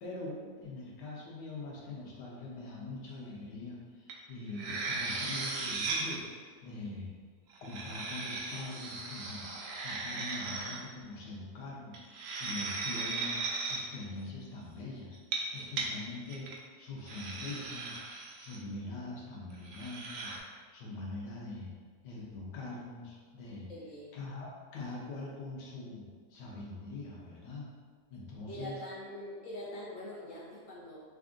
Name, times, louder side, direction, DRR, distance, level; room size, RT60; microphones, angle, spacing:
voice 1, 0.0-6.2 6.6-7.1 7.6-13.4 13.7-15.2 15.5-16.5 16.8-18.0 18.4-21.7 22.0-23.7 24.1-26.0 26.3-27.7 28.1-28.8, left 2 dB, 85° left, -3 dB, 1.4 m, -43 dB
sound 1, 4.1-4.2 4.5-6.2 7.5-10.8 11.9-13.8 15.1-15.9 16.3-16.5 17.1-18.6 19.6-20.4, right 3 dB, 70° right, 0.8 m, -37 dB
voice 2, 23.7-24.2 28.5-31.0, left 1 dB, 60° left, -6 dB, 0.9 m, -44 dB
3.4 x 2.5 x 3.7 m, 1.5 s
omnidirectional pair, 1.8 m